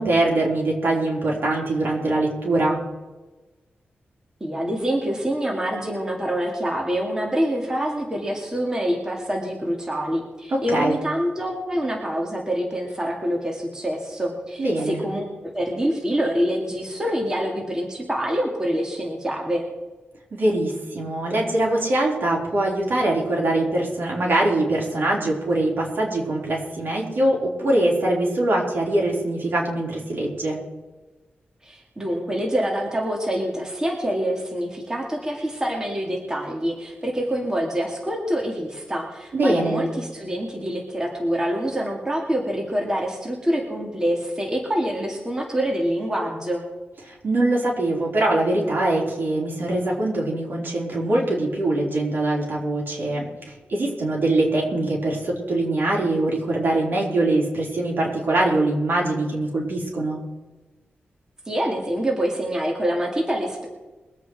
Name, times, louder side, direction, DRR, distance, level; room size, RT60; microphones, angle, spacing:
voice 1, 0.0-2.8 10.5-11.0 14.6-15.0 20.3-30.6 39.3-39.8 47.0-53.3 53.7-60.2, right 2 dB, 60° right, -2 dB, 4.4 m, -23 dB
voice 2, 4.4-19.6 31.6-46.6 61.5-63.7, equal, 15° right, 0 dB, 2.2 m, -26 dB
22.5 x 8.5 x 4.8 m, 1.2 s
wide cardioid pair, 115°, 4 cm